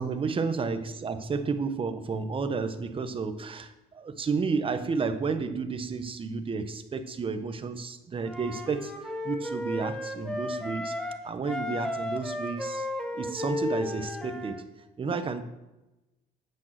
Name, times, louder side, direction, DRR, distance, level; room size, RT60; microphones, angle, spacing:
voice 1, 0.0-8.9 9.2-12.9 13.1-14.6 15.0-15.4, right 4 dB, 30° right, 9 dB, 1.1 m, -31 dB
Wind instrument woodwind instrument, 8.2-11.2 11.5-14.6, left 1 dB, 5° left, 1.4 m, -34 dB
8.8 x 8.3 x 6.7 m, 1.0 s
cardioid pair, 110°, 17 cm